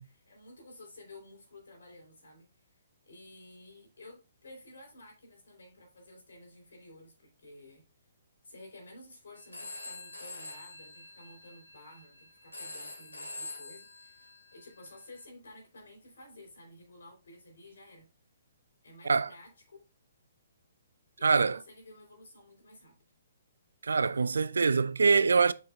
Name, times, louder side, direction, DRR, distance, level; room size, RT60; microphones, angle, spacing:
voice 1, 0.0-7.8 8.4-18.1 18.8-19.8 21.2-22.9, left 1 dB, 60° left, 3.8 m, -53 dB
Telephone, 9.4-15.2, left 2 dB, 80° left, 2.7 m, -46 dB
voice 2, 21.2-21.6 23.8-25.5, right 4 dB, 65° right, 0.3 m, -24 dB
7.2 x 5.8 x 2.4 m
figure-of-eight pair, 125°, 0 cm